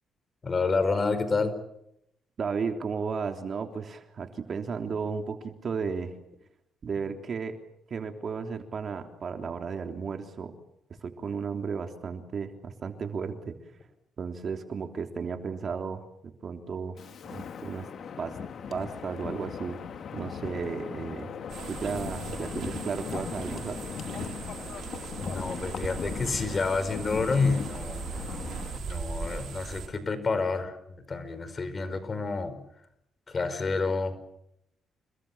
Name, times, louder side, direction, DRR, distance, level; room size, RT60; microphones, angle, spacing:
voice 1, 0.4-1.6 25.2-28.1 28.7-30.8 31.1-32.6 33.3-34.2, left 4 dB, 35° left, 12 dB, 5.0 m, -29 dB
voice 2, 2.4-6.1 6.8-7.5 7.9-10.5 11.0-13.6 14.2-17.0 17.3-17.9 18.2-18.4 18.7-19.8 20.1-21.3 21.7-23.8, right 5 dB, 50° right, 5 dB, 3.4 m, -34 dB
Wind, 17.0-28.8, left 7 dB, 60° left, 2.4 m, -38 dB
sound 1, 21.5-29.9, right 6 dB, 65° right, 6.4 m, -39 dB
29.5 x 22.0 x 7.3 m, 0.79 s
cardioid pair, 90°, 0 cm